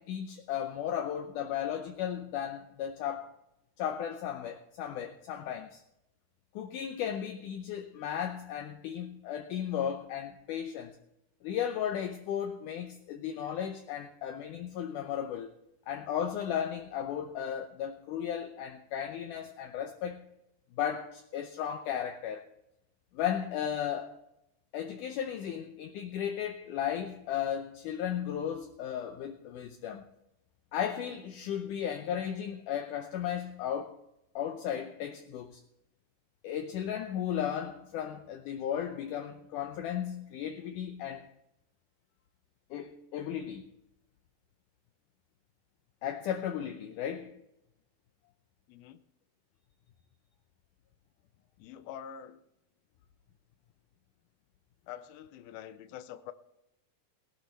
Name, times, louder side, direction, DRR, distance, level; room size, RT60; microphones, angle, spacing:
voice 1, 0.0-3.3 3.8-5.8 6.6-10.9 11.4-15.5 15.9-20.3 20.7-22.5 23.1-24.2 24.7-30.0 30.7-34.0 34.4-35.6 36.4-41.3 42.7-43.6 46.0-47.4, left 9 dB, 75° left, 2.1 m, -35 dB
voice 2, 48.7-49.0 51.6-52.4 54.9-56.3, left 10 dB, 90° left, 2.6 m, -45 dB
18.5 x 12.0 x 3.4 m
omnidirectional pair, 4.1 m